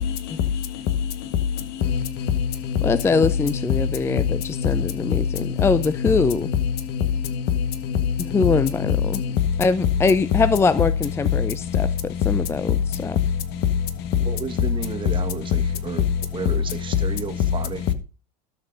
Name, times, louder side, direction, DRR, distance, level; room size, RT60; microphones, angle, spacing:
voice 1, 1.8-2.8 3.1-3.2 3.5-3.6 4.1-4.2 4.6-5.1 5.4-6.1 6.5-6.6 6.9-7.0 7.3-7.4 7.9-8.6 9.1-9.3, left 7 dB, 55° left, 1.5 m, -25 dB
voice 2, 2.8-6.5 8.3-9.2 9.6-11.9 12.3-12.8 13.0-13.2, left 4 dB, 15° left, 0.4 m, -22 dB
voice 3, 14.2-16.1 16.3-17.9, right 6 dB, 25° right, 1.6 m, -32 dB
12.5 x 6.6 x 3.9 m
hypercardioid pair, 100°, 20 cm